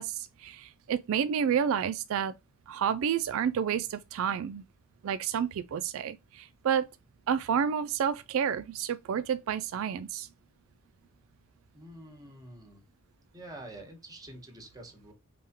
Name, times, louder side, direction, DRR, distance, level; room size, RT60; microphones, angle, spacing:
voice 1, 0.0-2.3 2.7-4.6 5.0-6.9 7.3-10.3, right 8 dB, 65° right, 0.3 m, -30 dB
voice 2, 11.7-12.8 13.3-15.1, right 1 dB, 15° right, 1.4 m, -47 dB
4.8 x 3.4 x 2.9 m
head